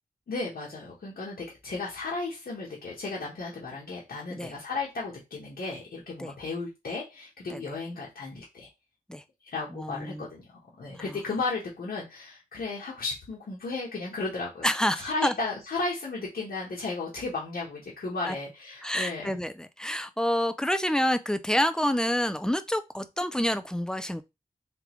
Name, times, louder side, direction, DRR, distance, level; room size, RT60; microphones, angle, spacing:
voice 1, 0.3-8.7 9.5-10.4 10.8-19.4, left 3 dB, 85° left, 1.2 m, -34 dB
voice 2, 9.7-10.2 14.6-15.3 18.3-18.4 18.8-24.2, equal, 5° left, 0.4 m, -28 dB
3.7 x 3.4 x 3.0 m
wide cardioid pair, 75°, 15 cm